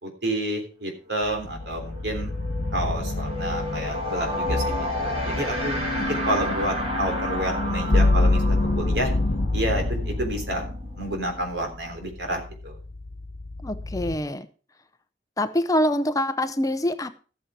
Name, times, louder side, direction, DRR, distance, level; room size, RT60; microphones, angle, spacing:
voice 1, 0.0-2.3 2.7-9.1 9.5-10.7 11.0-12.8, right 1 dB, 80° right, 3.5 m, -30 dB
sound 1, 1.0-1.2 1.5-12.1, equal, 35° right, 2.7 m, -33 dB
sound 2, 1.2-14.2, left 2 dB, 65° left, 1.2 m, -33 dB
sound 3, 2.2-9.5, left 2 dB, 45° left, 0.9 m, -26 dB
voice 2, 13.6-14.5 15.4-17.1, left 1 dB, 20° left, 0.7 m, -25 dB
13.5 x 8.7 x 4.8 m
head